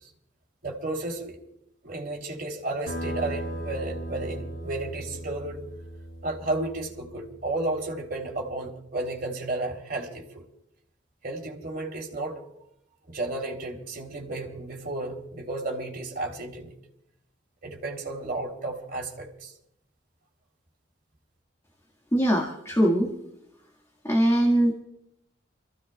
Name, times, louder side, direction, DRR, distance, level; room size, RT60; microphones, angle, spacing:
voice 1, 0.6-1.4 1.8-5.6 6.2-10.4 11.2-12.4 13.1-16.7 17.6-19.5, right 2 dB, 50° right, 0 dB, 3.1 m, -33 dB
sound 1, 2.9-8.0, right 1 dB, 75° left, 6.9 m, -37 dB
voice 2, 22.1-23.1 24.0-24.7, right 1 dB, 15° left, 0 dB, 1.7 m, -21 dB
28.0 x 15.0 x 2.3 m, 0.78 s
head